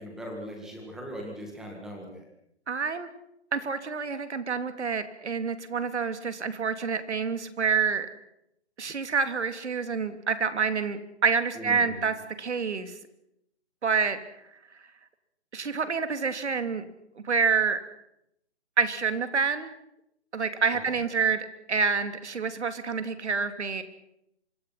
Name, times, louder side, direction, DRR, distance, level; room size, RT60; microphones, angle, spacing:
voice 1, 0.0-2.2 11.5-12.0 20.9-21.0, equal, ahead, 1 dB, 2.0 m, -39 dB
voice 2, 2.7-3.1 3.5-8.1 8.8-12.9 13.8-14.2 15.5-16.8 17.2-17.8 18.8-19.7 20.3-23.8, right 5 dB, 85° right, 10 dB, 3.0 m, -27 dB
25.5 x 25.0 x 5.9 m, 0.79 s
hypercardioid pair, 180°, 34 cm